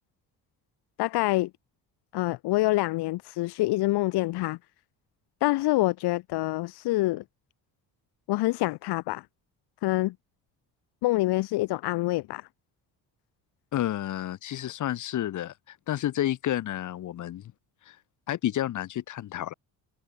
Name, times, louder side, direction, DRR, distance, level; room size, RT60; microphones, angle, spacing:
voice 1, 1.0-1.5 2.1-4.6 5.4-7.2 8.3-9.2 9.8-10.1 11.0-12.5, left 19 dB, 85° left, 1.2 m, -26 dB
voice 2, 13.7-17.4 17.9-18.0 18.3-19.5, left 12 dB, 50° left, 1.5 m, -30 dB
cardioid pair, 160°, 39 cm